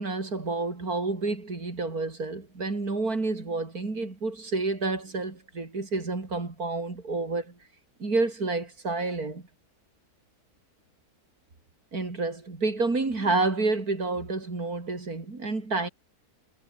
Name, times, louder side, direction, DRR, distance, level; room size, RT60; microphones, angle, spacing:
voice 1, 0.0-7.5 8.0-9.5 11.9-15.9, right 3 dB, 75° right, 4.5 m, -29 dB
omnidirectional pair, 1.6 m